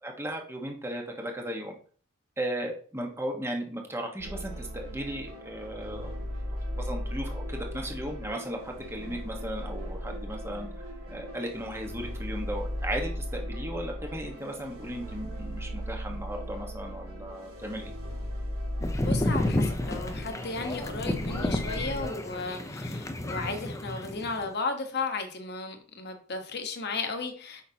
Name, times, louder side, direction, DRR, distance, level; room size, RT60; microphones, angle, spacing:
voice 1, 0.0-1.7 2.4-6.1 6.8-10.7 11.1-17.9, right 1 dB, 10° right, 1.4 m, -36 dB
sound 1, 4.2-22.0, equal, 80° right, 2.1 m, -37 dB
sound 2, 18.8-24.5, left 1 dB, 15° left, 0.7 m, -31 dB
voice 2, 19.0-27.6, left 3 dB, 50° left, 1.3 m, -35 dB
8.5 x 5.6 x 2.9 m
head